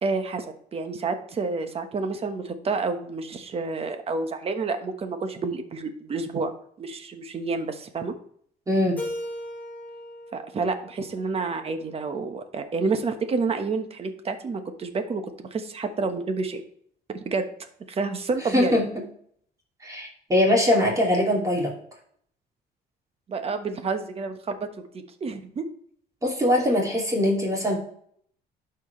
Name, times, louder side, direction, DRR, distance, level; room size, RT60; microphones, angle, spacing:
voice 1, 0.0-0.5 0.7-6.5 6.8-8.1 10.3-16.6 17.2-17.4 17.9-18.8 23.3-24.6 24.9-25.6, right 4 dB, 35° right, 7 dB, 1.2 m, -29 dB
voice 2, 8.7-9.0 18.5-18.9 19.8-21.7 26.2-27.8, left 1 dB, 20° right, -2 dB, 2.7 m, -22 dB
Keyboard (musical), 9.0-11.9, left 1 dB, 10° left, 3.3 m, -38 dB
12.0 x 4.6 x 3.2 m, 0.63 s
cardioid pair, 110°, 17 cm